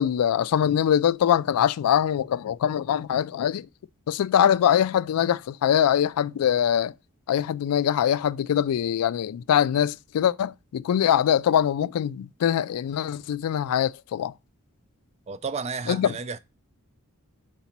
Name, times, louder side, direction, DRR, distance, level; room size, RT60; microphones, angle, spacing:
voice 1, 0.0-3.7 4.1-6.9 7.3-14.3 15.9-16.1, left 9 dB, 85° left, 0.3 m, -23 dB
voice 2, 15.3-16.4, right 5 dB, 30° right, 0.4 m, -32 dB
4.8 x 4.1 x 5.8 m
head